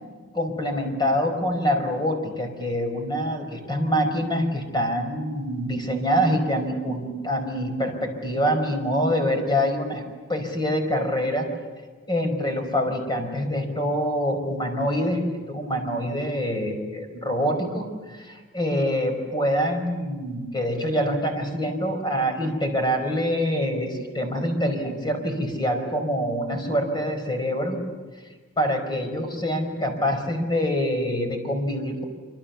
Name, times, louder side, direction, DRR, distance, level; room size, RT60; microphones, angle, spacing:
voice 1, 0.3-10.0 10.3-11.5 12.1-27.8 28.6-32.0, equal, 20° left, 5 dB, 5.0 m, -25 dB
26.5 x 26.0 x 7.2 m, 1.4 s
head